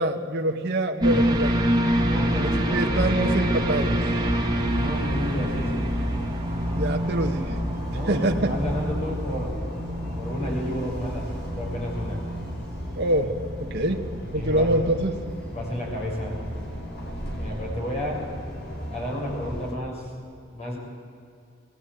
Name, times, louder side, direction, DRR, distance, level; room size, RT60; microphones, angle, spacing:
voice 1, 0.0-1.6 2.4-4.0 6.7-7.6 8.0-8.5 12.9-13.3 13.6-14.0 14.3-15.2, right 1 dB, 55° right, 2 dB, 1.6 m, -25 dB
sound 1, 1.0-18.8 19.2-19.3, equal, 20° right, 2.4 m, -28 dB
voice 2, 2.0-3.3 4.8-5.9 7.9-9.6 9.9-12.2 14.3-14.7 15.5-16.4 17.4-18.3 18.9-20.1 20.5-20.8, left 1 dB, 35° left, -3 dB, 6.8 m, -32 dB
sound 2, 3.0-19.7, equal, 55° left, 4.2 m, -36 dB
21.5 x 17.5 x 9.1 m, 2.5 s
head